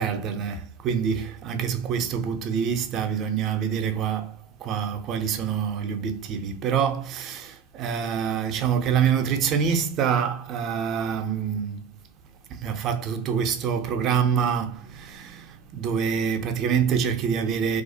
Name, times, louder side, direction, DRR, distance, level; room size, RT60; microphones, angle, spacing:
voice 1, 0.0-11.9 12.1-12.2 12.5-17.8, right 7 dB, 35° right, 0.4 m, -26 dB
2.4 x 2.0 x 2.6 m
hypercardioid pair, 105°, 0 cm